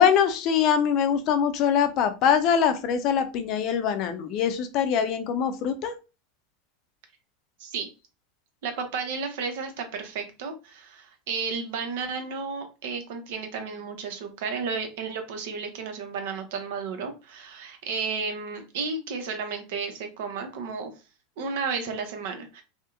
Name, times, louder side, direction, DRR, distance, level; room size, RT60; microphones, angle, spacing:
voice 1, 0.0-6.0, left 7 dB, 50° left, 10 dB, 0.4 m, -23 dB
voice 2, 8.6-20.9 21.4-22.6, right 5 dB, 70° right, 6 dB, 0.7 m, -33 dB
2.7 x 2.1 x 2.4 m, 0.30 s
hypercardioid pair, 100°, 0 cm